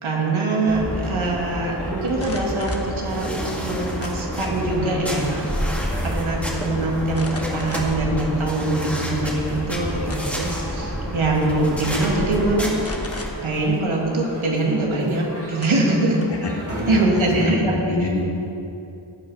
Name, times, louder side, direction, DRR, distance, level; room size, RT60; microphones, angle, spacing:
voice 1, 0.0-5.3 6.0-12.8 13.4-16.2 16.9-17.7, right 2 dB, 80° right, -2 dB, 2.2 m, -23 dB
sound 1, 0.7-13.3, equal, 5° left, 2.0 m, -29 dB
sound 2, 0.8-17.5, equal, 30° right, 3.2 m, -39 dB
sound 3, 2.1-2.9 4.0-4.6 5.0-5.5 5.8-5.9 7.1-8.1 8.7-8.8 9.8-10.5 11.5-11.7 12.0-12.2 12.8-13.3 15.1-15.2 15.6-16.5, left 2 dB, 30° left, 1.3 m, -38 dB
voice 2, 17.9-18.2, left 2 dB, 60° left, -1 dB, 1.9 m, -26 dB
17.5 x 6.0 x 5.5 m, 2.8 s
wide cardioid pair, 95°, 47 cm